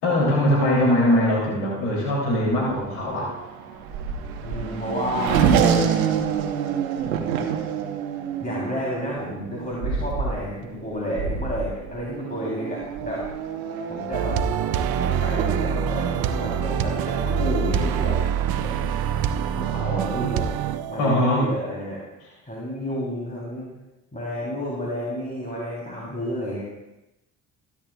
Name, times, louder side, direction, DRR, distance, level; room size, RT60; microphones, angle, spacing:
voice 1, 0.0-3.3 21.0-21.5, left 1 dB, 75° left, -3 dB, 3.1 m, -21 dB
Race car auto racing / Accelerating revving vroom, 1.9-18.1, right 7 dB, 90° right, 1.0 m, -28 dB
voice 2, 4.4-5.5 8.4-13.3 13.9-14.4 15.0-18.2 18.6-18.9 19.5-20.5 20.9-22.0 22.5-23.7 24.1-26.6, equal, 20° left, -6 dB, 3.5 m, -30 dB
sound 1, 14.1-21.3, right 8 dB, 60° right, 0.8 m, -25 dB
15.5 x 11.0 x 2.4 m, 0.95 s
hypercardioid pair, 60°, 40 cm